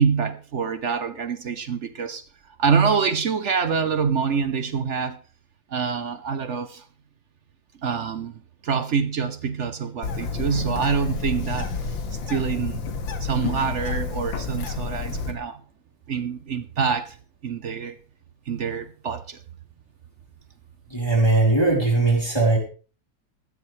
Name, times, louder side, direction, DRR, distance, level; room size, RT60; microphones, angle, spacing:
voice 1, 0.0-2.2 2.6-5.2 5.7-6.8 7.8-8.3 8.6-11.7 12.3-12.8 13.2-15.6 16.1-17.2 17.4-18.0 18.5-19.4, right 6 dB, 60° right, 0.8 m, -25 dB
Bird, 10.0-15.3, left 4 dB, 80° left, 2.3 m, -30 dB
voice 2, 20.9-22.6, right 2 dB, 10° left, 4.1 m, -19 dB
14.5 x 13.5 x 3.2 m
omnidirectional pair, 2.1 m